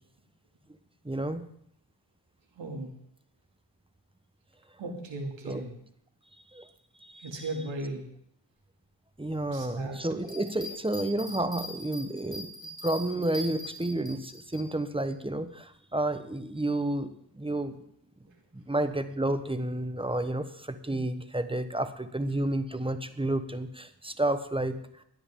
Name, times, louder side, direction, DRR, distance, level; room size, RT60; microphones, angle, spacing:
voice 1, 1.0-1.4 5.4-5.6 6.5-6.6 7.0-7.3 9.2-12.5 12.8-17.7 18.5-24.8, right 1 dB, 10° right, 10 dB, 1.1 m, -31 dB
voice 2, 2.6-2.9 4.8-5.7 7.2-8.1 9.5-10.0, right 2 dB, 90° right, 2 dB, 2.8 m, -36 dB
Bell, 10.2-14.6 15.1-15.2, left 1 dB, 55° left, 5.5 m, -41 dB
17.5 x 10.5 x 3.9 m, 0.70 s
cardioid pair, 60°, 44 cm